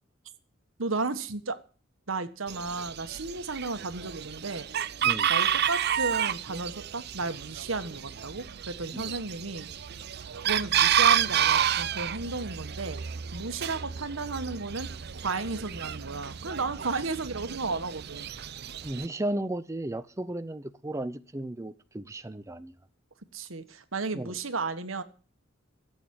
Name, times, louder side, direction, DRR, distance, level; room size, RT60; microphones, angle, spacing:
voice 1, 0.8-1.6 2.1-4.6 5.3-9.7 10.4-13.0 13.3-14.9 15.1-18.3 23.3-25.0, right 3 dB, 85° right, 1.4 m, -33 dB
Chicken rooster, 2.5-19.1, right 9 dB, 55° right, 0.6 m, -30 dB
voice 2, 18.8-22.8 24.1-24.4, right 1 dB, 15° right, 0.6 m, -35 dB
13.5 x 8.1 x 8.6 m
head